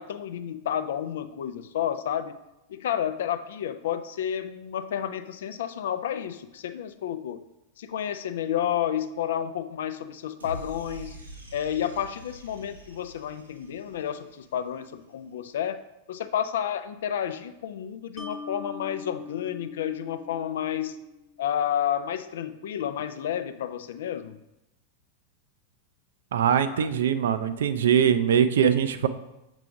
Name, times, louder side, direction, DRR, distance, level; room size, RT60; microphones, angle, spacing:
voice 1, 0.0-2.4 2.7-7.4 7.8-11.2 11.5-15.8 16.1-21.0 21.4-24.4 26.7-26.9, left 9 dB, 60° left, 11 dB, 0.4 m, -31 dB
sound 1, 10.4-14.7, right 1 dB, 80° right, 1.4 m, -44 dB
Mallet percussion, 18.2-21.4, left 4 dB, 15° left, 0.9 m, -42 dB
voice 2, 26.3-29.1, right 8 dB, 60° right, 11 dB, 0.4 m, -22 dB
6.7 x 4.9 x 3.5 m, 0.92 s
figure-of-eight pair, 90°, 0 cm